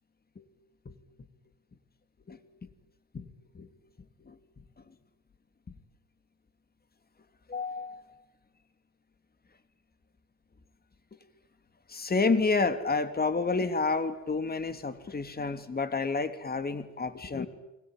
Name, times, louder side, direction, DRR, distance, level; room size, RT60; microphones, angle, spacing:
voice 1, 3.1-3.7 4.2-4.4 7.5-8.0 11.9-17.5, left 4 dB, 30° left, 10 dB, 3.0 m, -30 dB
30.0 x 22.0 x 9.1 m, 0.96 s
cardioid pair, 90°, 30 cm